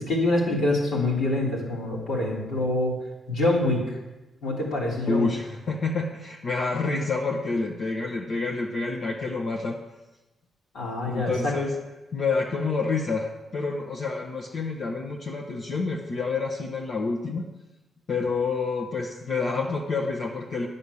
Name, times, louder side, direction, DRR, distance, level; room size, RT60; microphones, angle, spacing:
voice 1, 0.0-2.9 3.3-4.0 4.4-5.3 10.7-11.5, left 2 dB, 80° left, -5 dB, 3.3 m, -25 dB
voice 2, 5.1-9.8 11.1-11.7 12.1-17.5 18.1-20.7, left 4 dB, 60° left, -1 dB, 1.0 m, -28 dB
9.5 x 5.4 x 7.0 m, 1.0 s
cardioid pair, 70°, 0 cm